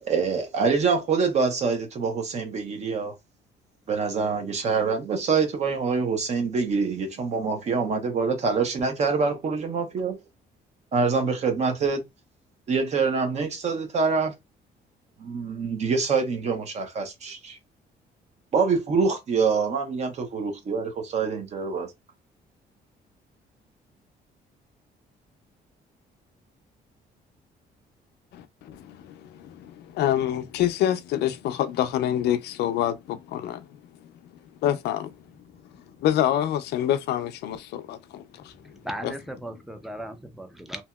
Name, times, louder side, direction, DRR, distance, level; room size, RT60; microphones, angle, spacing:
voice 1, 0.0-3.1 3.9-10.2 10.9-12.0 12.7-14.3 15.2-17.6 18.5-21.9, right 5 dB, 40° right, 0.7 m, -25 dB
voice 2, 28.3-33.7 34.6-35.2 36.0-39.1 39.5-39.6, left 11 dB, 80° left, 0.4 m, -27 dB
voice 3, 38.8-40.8, right 1 dB, ahead, 0.4 m, -36 dB
2.8 x 2.7 x 2.2 m
cardioid pair, 165°, 17 cm